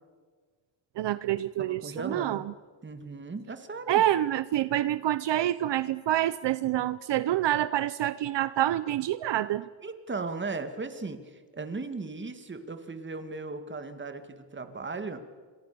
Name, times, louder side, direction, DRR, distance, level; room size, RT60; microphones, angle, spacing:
voice 1, 1.0-2.4 3.9-9.6, right 13 dB, 70° right, 15 dB, 0.8 m, -27 dB
voice 2, 1.6-2.4 2.8-4.0 9.8-15.2, right 3 dB, 25° right, 9 dB, 2.2 m, -37 dB
27.5 x 25.5 x 6.9 m, 1.5 s
wide cardioid pair, 145°, 44 cm